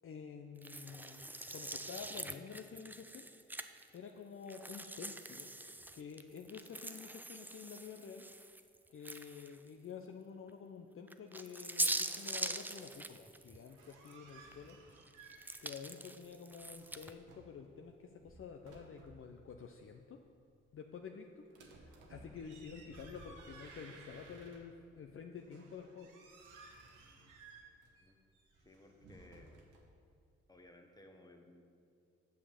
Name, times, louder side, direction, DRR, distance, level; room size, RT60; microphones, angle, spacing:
voice 1, 0.0-3.3 3.9-5.5 5.9-8.3 8.9-14.8 15.6-20.2 20.7-26.1, left 6 dB, 45° left, 3 dB, 0.6 m, -50 dB
sound 1, 0.6-4.0 4.5-9.7 10.1-10.2 11.1-14.1 14.5-17.1, right 1 dB, 5° right, 0.4 m, -43 dB
sound 2, 13.7-17.6 18.1-19.3 21.5-24.9 25.4-29.8, right 3 dB, 90° right, 1.1 m, -58 dB
voice 2, 28.6-29.6 30.5-31.6, left 1 dB, 15° left, 3 dB, 1.2 m, -59 dB
6.5 x 5.6 x 7.2 m, 2.3 s
supercardioid pair, 55°, 30 cm